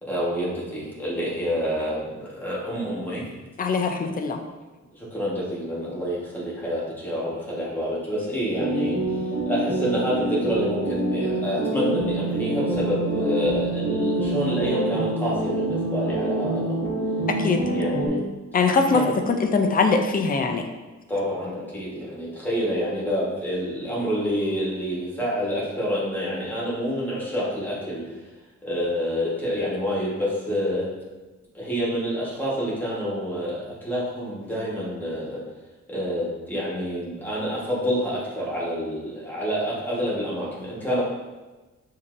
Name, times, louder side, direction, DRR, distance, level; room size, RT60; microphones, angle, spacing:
voice 1, 0.0-3.3 4.9-16.9 17.7-18.2 18.9-19.1 21.1-28.3 28.6-30.9 31.5-35.4 35.9-41.0, equal, 5° left, -7 dB, 1.2 m, -28 dB
voice 2, 3.6-4.4 17.3-17.6 18.5-19.0 19.3-20.7, left 4 dB, 30° left, 4 dB, 0.4 m, -22 dB
sound 1, 8.6-18.1, right 2 dB, 20° right, 1.4 m, -26 dB
6.8 x 2.7 x 2.5 m, 1.2 s
wide cardioid pair, 165°, 29 cm